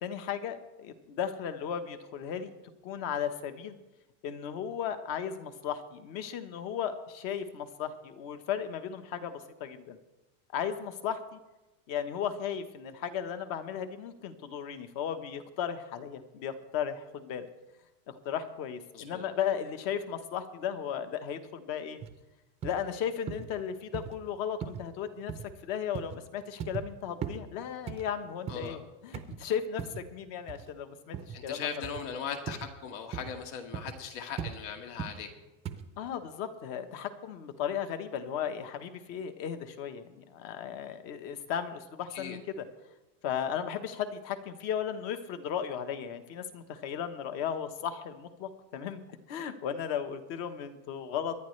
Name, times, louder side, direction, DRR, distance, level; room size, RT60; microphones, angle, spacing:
voice 1, 0.0-2.5 2.8-3.7 4.2-10.0 10.5-11.4 11.9-17.5 18.1-22.0 22.6-25.3 25.6-31.7 36.0-42.6 43.2-49.0 49.3-51.4, left 8 dB, 45° left, 9 dB, 1.2 m, -35 dB
voice 2, 18.9-19.3 28.5-28.8 31.3-35.3 42.1-42.4, left 7 dB, 75° left, 5 dB, 2.0 m, -39 dB
sound 1, 22.0-22.1 22.6-22.8 23.3-23.5 23.9-24.1 24.6-24.8 25.3-25.5 25.9-26.2 26.6-26.9 27.2-27.4 27.9-28.7 29.1-29.4 29.8-30.1 30.5-30.7 31.1-31.4 31.8-32.0 32.5-32.7 33.1-33.3 33.7-34.0 34.4-34.6 35.0-35.2 35.6-35.8, right 8 dB, 20° right, 0.5 m, -38 dB
23.5 x 11.0 x 3.3 m, 1.0 s
supercardioid pair, 170°, 35 cm